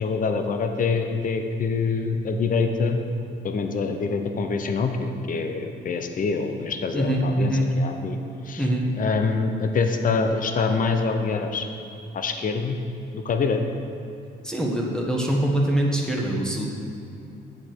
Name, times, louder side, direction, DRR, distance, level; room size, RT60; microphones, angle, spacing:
voice 1, 0.0-3.0 3.4-8.2 8.4-8.7 9.0-11.7 12.1-12.8 13.1-13.6, left 4 dB, 45° left, 6 dB, 0.8 m, -25 dB
voice 2, 6.9-7.7 8.6-8.9 14.4-16.7, right 1 dB, 5° left, -2 dB, 1.3 m, -23 dB
8.5 x 7.4 x 4.6 m, 2.6 s
cardioid pair, 90°, 20 cm